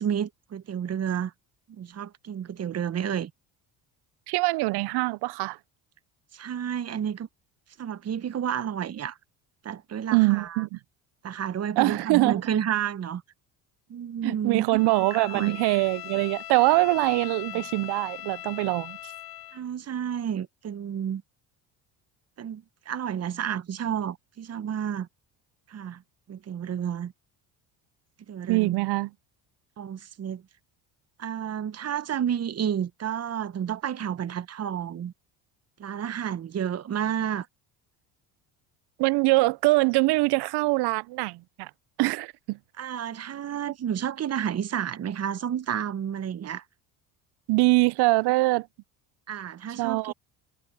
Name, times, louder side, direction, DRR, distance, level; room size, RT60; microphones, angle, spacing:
voice 1, 0.0-1.3 1.7-3.3 6.3-7.3 7.8-9.2 9.6-10.6 11.2-13.2 13.9-14.6 15.1-15.6 17.5-17.6 19.5-21.2 22.4-25.1 25.7-26.0 26.3-27.1 28.3-28.7 29.8-30.4 31.2-35.1 35.8-37.5 42.8-46.6 49.3-50.1, right 9 dB, 35° right, 0.9 m, -31 dB
voice 2, 4.3-5.6 10.1-10.8 11.8-12.4 14.2-19.0 28.5-29.1 39.0-41.7 42.0-42.6 47.5-48.7 49.8-50.1, right 22 dB, 65° right, 0.6 m, -23 dB
Bowed string instrument, 14.7-19.6, left 15 dB, 55° left, 1.1 m, -40 dB
supercardioid pair, 75°, 43 cm